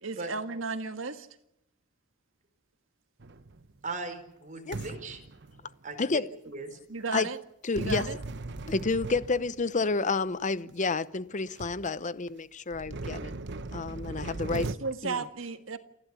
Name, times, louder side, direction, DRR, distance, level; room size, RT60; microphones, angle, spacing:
voice 1, 0.0-1.3 6.9-7.4 7.8-8.2 14.5-15.8, right 4 dB, 75° right, 1.7 m, -34 dB
sound 1, 3.2-3.8 4.7-6.0 7.8-9.9 10.7-10.8 11.3-11.4 11.6-11.9 12.7-14.8, right 2 dB, 60° right, 1.0 m, -38 dB
voice 2, 3.8-5.2 5.8-6.8, right 3 dB, 40° right, 4.4 m, -39 dB
voice 3, 7.6-8.1 8.7-13.3 13.7-14.7 15.0-15.2, left 3 dB, 40° left, 0.8 m, -30 dB
29.0 x 12.5 x 8.3 m
head